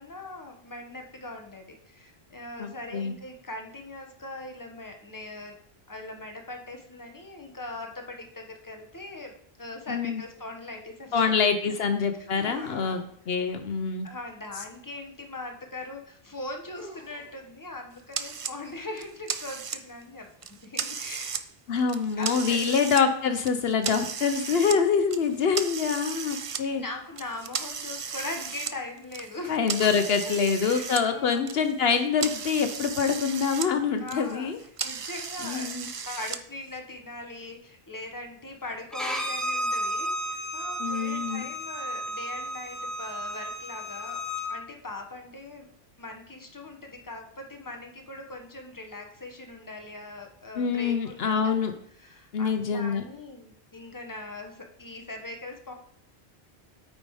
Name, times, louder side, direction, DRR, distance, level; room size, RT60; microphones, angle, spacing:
voice 1, 0.0-5.6 5.9-9.3 9.6-11.3 11.6-11.9 12.2-13.1 14.0-21.4 22.2-22.8 24.3-24.8 26.7-30.3 30.6-31.4 34.0-34.5 34.8-44.2 44.5-45.7 46.0-51.7 51.9-55.7, left 2 dB, 20° left, 3 dB, 1.3 m, -41 dB
voice 2, 2.6-3.1 9.9-10.2 11.1-13.0 13.3-14.1 21.7-26.8 29.5-34.6 35.4-35.9 40.8-41.5 50.6-51.7 52.3-53.0, left 6 dB, 75° left, 7 dB, 1.0 m, -25 dB
sound 1, 10.2-10.3 12.3-13.3 15.1-15.2 16.7-17.5, equal, 55° left, 1.9 m, -47 dB
sound 2, 18.1-18.5 19.0-20.0 20.4-21.4 21.8-23.0 23.4-24.8 25.1-26.6 27.2-31.0 31.3-33.7 34.0-36.4, right 6 dB, 40° right, 0.5 m, -35 dB
Bowed string instrument, 38.9-44.5, equal, ahead, 1.2 m, -33 dB
8.8 x 5.3 x 4.8 m, 0.65 s
omnidirectional pair, 1.0 m